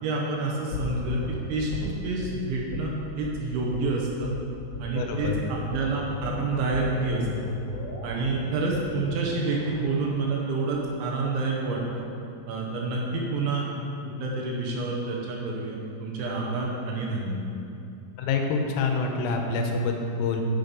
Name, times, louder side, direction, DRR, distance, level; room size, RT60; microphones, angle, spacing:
voice 1, 0.0-1.2 1.5-2.9 3.1-4.3 4.8-7.3 8.0-12.0 12.5-13.6 14.0-17.4, right 3 dB, 75° right, -2 dB, 3.1 m, -28 dB
sound 1, 0.7-2.3 2.7-2.9 3.2-3.4 3.7-3.9 4.2-4.4 4.7-4.9 5.2-5.4 5.7-11.7 12.0-12.1, left 2 dB, 50° left, 2.5 m, -37 dB
voice 2, 5.0-5.4 18.2-20.4, left 4 dB, 85° left, 3 dB, 3.4 m, -26 dB
10.0 x 6.5 x 5.3 m, 2.7 s
omnidirectional pair, 5.9 m